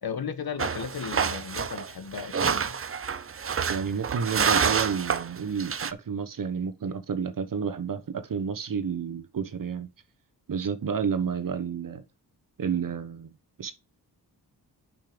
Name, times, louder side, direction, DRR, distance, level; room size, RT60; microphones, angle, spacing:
voice 1, 0.0-2.8, left 6 dB, 60° left, 1.4 m, -35 dB
sound 1, 0.6-5.9, right 6 dB, 35° right, 0.7 m, -28 dB
voice 2, 3.7-9.9 10.5-12.0 12.6-13.3 13.6-13.7, right 6 dB, 50° right, 1.1 m, -30 dB
5.7 x 5.4 x 5.2 m
cardioid pair, 75°, 40 cm